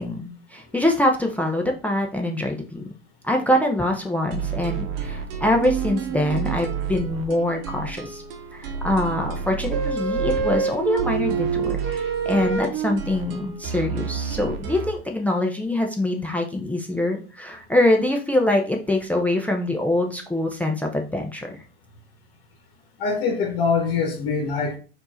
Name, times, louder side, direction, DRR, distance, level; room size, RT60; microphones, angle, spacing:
voice 1, 0.0-2.8 3.2-8.2 8.5-21.6, left 1 dB, 5° left, 0.7 m, -24 dB
sound 1, 4.3-15.0, right 6 dB, 70° right, 1.0 m, -31 dB
sound 2, 5.6-6.6 9.7-12.9, right 6 dB, 40° right, 1.1 m, -26 dB
voice 2, 23.0-24.8, left 5 dB, 50° left, 1.3 m, -23 dB
4.4 x 2.8 x 4.3 m
hypercardioid pair, 95°, 30 cm